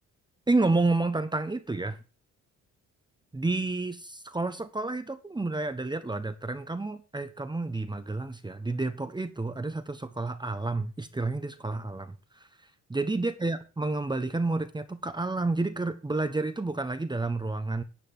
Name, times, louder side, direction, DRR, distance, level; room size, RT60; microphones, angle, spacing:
voice 1, 0.5-2.0 3.3-12.1 12.9-17.8, right 3 dB, 15° right, 1.1 m, -30 dB
10.5 x 5.2 x 8.0 m
cardioid pair, 90°, 30 cm